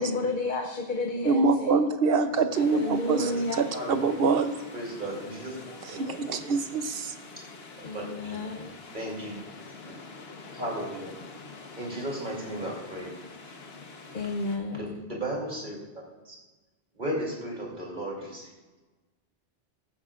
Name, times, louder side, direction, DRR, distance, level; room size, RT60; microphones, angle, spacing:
voice 1, 0.0-1.7 2.6-3.6 7.8-8.7 14.1-15.1, left 2 dB, 55° left, 3 dB, 0.9 m, -31 dB
voice 2, 1.2-4.7 5.9-7.1, right 4 dB, 70° right, 9 dB, 0.9 m, -25 dB
sound 1, 2.5-14.6, left 3 dB, 75° left, 1.4 m, -46 dB
voice 3, 3.7-4.2 4.7-6.2 7.7-8.4 8.9-9.7 10.5-11.1 11.8-13.2 13.4-13.6 14.7-16.4 17.0-18.5, right 1 dB, 50° right, -2 dB, 3.1 m, -36 dB
15.5 x 10.0 x 2.5 m, 1.2 s
omnidirectional pair, 1.0 m